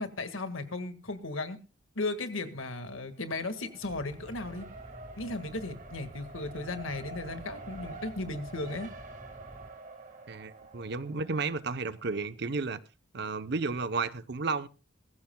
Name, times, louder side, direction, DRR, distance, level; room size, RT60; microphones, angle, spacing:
voice 1, 0.0-1.6 2.0-4.7 5.2-8.9, left 2 dB, 85° left, 1.8 m, -36 dB
Race car auto racing, 3.1-12.2, right 3 dB, 40° right, 1.9 m, -48 dB
sound 1, 3.8-9.7, equal, 10° right, 2.1 m, -50 dB
voice 2, 10.3-12.8 13.1-14.7, right 4 dB, 55° right, 0.8 m, -32 dB
21.5 x 15.0 x 2.3 m
head